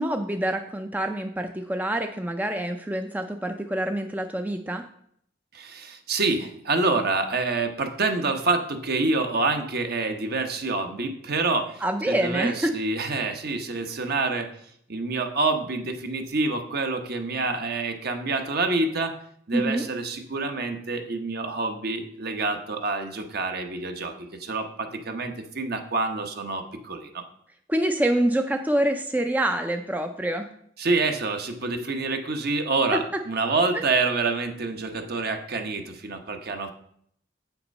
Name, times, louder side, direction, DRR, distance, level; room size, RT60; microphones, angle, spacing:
voice 1, 0.0-4.8 11.8-12.7 19.5-19.9 27.7-30.5 32.9-33.0 33.7-33.8, right 1 dB, 10° right, 6 dB, 0.4 m, -26 dB
voice 2, 5.5-14.5 14.9-19.1 19.5-24.1 24.4-27.2 30.8-36.7, right 3 dB, 55° right, 5 dB, 1.0 m, -27 dB
8.1 x 5.9 x 5.3 m, 0.67 s
head